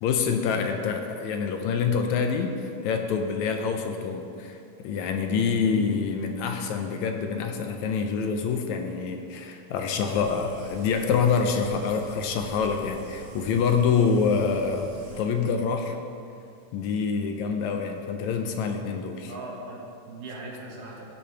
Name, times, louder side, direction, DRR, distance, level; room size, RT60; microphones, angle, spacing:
voice 1, 0.0-4.6 4.8-14.9 15.2-16.0 16.7-19.3, left 5 dB, 75° left, 5 dB, 1.8 m, -26 dB
sound 1, 10.0-15.2, right 2 dB, 60° right, 2.9 m, -45 dB
voice 2, 19.2-21.0, right 2 dB, 80° right, -3 dB, 3.3 m, -39 dB
15.5 x 8.1 x 3.4 m, 2.5 s
omnidirectional pair, 3.8 m